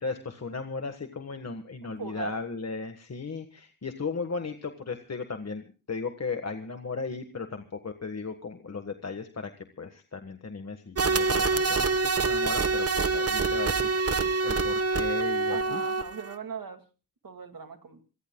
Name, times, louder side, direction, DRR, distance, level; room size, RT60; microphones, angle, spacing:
voice 1, 0.0-9.5 9.8-13.9 14.2-15.8, left 4 dB, 45° left, 6 dB, 1.5 m, -36 dB
voice 2, 1.8-2.4 15.5-16.8 17.2-18.0, right 5 dB, 70° right, 7 dB, 2.3 m, -39 dB
sound 1, 11.0-16.4, right 4 dB, 40° right, 1.4 m, -26 dB
27.0 x 18.5 x 2.3 m, 0.35 s
wide cardioid pair, 80°, 35 cm